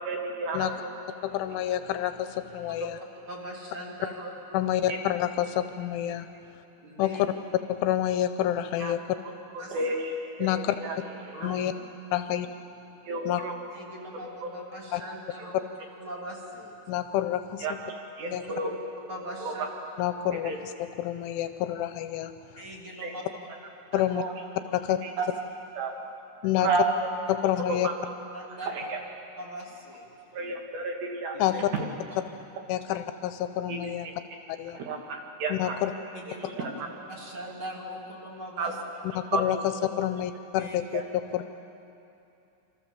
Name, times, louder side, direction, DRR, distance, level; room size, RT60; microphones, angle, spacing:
voice 1, 0.1-1.0 1.5-1.6 4.2-4.3 4.9-5.0 8.8-8.9 9.7-10.1 10.4-11.0 11.2-11.5 13.1-13.5 14.4-14.5 17.6-17.7 18.2-18.7 19.4-19.5 20.4-20.6 23.0-23.1 24.2-24.3 25.0-25.1 25.8-25.9 26.6-26.8 27.8-27.9 28.7-29.0 30.3-31.6 33.7-33.8 34.8-35.8 36.6-36.7 38.6-38.7 39.3-39.4 40.9-41.0, right 3 dB, 65° right, 2 dB, 3.7 m, -31 dB
voice 2, 1.2-2.9 4.5-6.3 7.0-7.1 7.7-9.0 10.4-10.8 11.4-11.7 12.1-12.5 13.3-13.4 14.9-15.0 16.9-17.7 18.3-18.4 20.0-22.3 23.9-24.2 24.7-25.0 26.4-26.7 27.3-27.9 31.4-31.7 32.7-34.1 34.5-34.8 35.5-35.9 39.2-41.4, left 12 dB, 80° left, 10 dB, 3.0 m, -28 dB
voice 3, 3.3-4.2 4.5-4.8 6.8-7.2 9.6-9.8 11.3-11.6 12.1-12.3 13.7-16.7 18.2-18.4 18.6-18.7 19.1-19.6 22.6-23.5 23.9-24.1 24.7-24.8 25.2-25.3 28.3-28.9 29.4-30.3 31.3-31.6 32.1-32.2 36.1-36.5 37.1-38.8 40.6-40.7, equal, 30° right, -2 dB, 3.0 m, -41 dB
27.0 x 26.0 x 7.3 m, 2.8 s
omnidirectional pair, 5.8 m